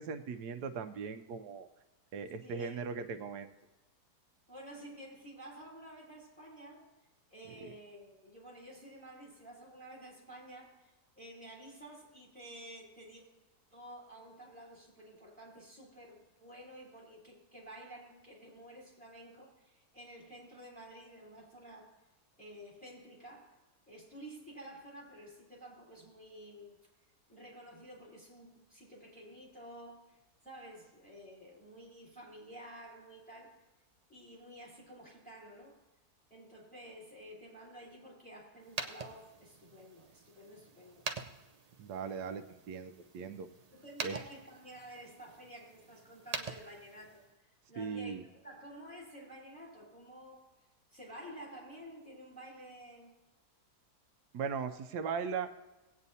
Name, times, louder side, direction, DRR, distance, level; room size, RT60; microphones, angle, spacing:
voice 1, 0.0-1.7 2.1-3.5 41.8-43.5 44.0-44.1 47.8-48.2 54.3-55.5, right 6 dB, 85° right, 8 dB, 1.2 m, -38 dB
voice 2, 2.4-3.1 4.5-6.9 7.3-13.2 13.7-22.0 22.4-23.6 23.9-26.8 27.3-30.2 30.4-33.5 34.1-35.8 36.3-41.0 43.7-48.2 48.4-50.4 50.9-53.2, right 1 dB, 5° left, -4 dB, 3.7 m, -51 dB
sound 1, 38.6-47.3, right 4 dB, 60° right, 0.4 m, -45 dB
18.0 x 9.0 x 2.7 m, 1.1 s
omnidirectional pair, 1.7 m